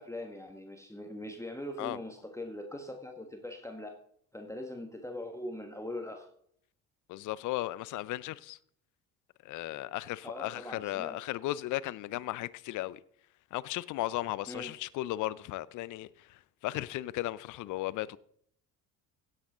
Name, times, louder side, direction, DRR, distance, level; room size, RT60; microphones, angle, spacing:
voice 1, 0.0-4.0 4.3-6.3 10.2-11.2 14.5-14.7, left 1 dB, 5° left, 1.5 m, -41 dB
voice 2, 7.1-8.6 9.4-13.0 13.5-18.2, left 16 dB, 40° left, 0.6 m, -36 dB
16.5 x 8.1 x 3.7 m
figure-of-eight pair, 60°, 48 cm